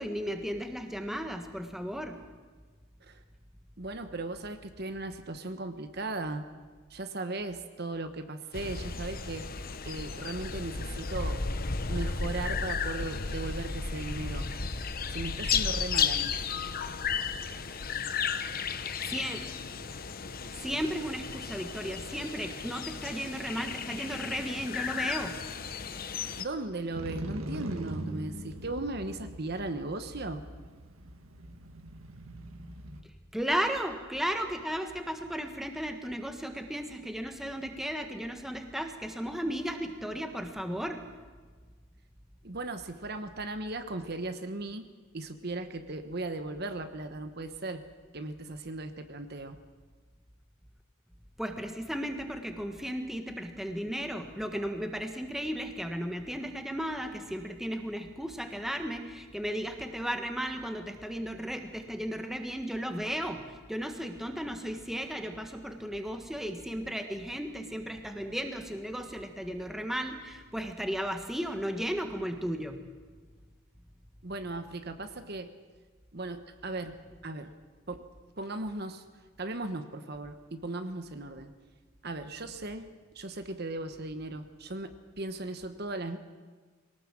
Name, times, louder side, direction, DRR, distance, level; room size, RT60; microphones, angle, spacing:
voice 1, 0.0-2.2 19.0-19.5 20.6-25.4 33.3-41.0 51.4-72.8, equal, ahead, 5 dB, 1.5 m, -35 dB
voice 2, 3.8-6.4 6.9-9.5 9.8-11.4 11.9-14.5 15.1-16.4 26.4-30.4 42.4-44.8 45.1-47.8 48.1-49.6 74.2-75.5 76.1-77.0 77.2-77.5 77.9-78.0 78.4-79.0 79.4-81.5 82.0-86.2, right 2 dB, 50° right, 8 dB, 1.2 m, -37 dB
sound 1, 8.5-26.4, left 5 dB, 45° left, 1.0 m, -34 dB
Motorcycle, 26.9-33.0, right 1 dB, 80° right, 1.8 m, -42 dB
23.0 x 18.5 x 7.6 m, 1.4 s
head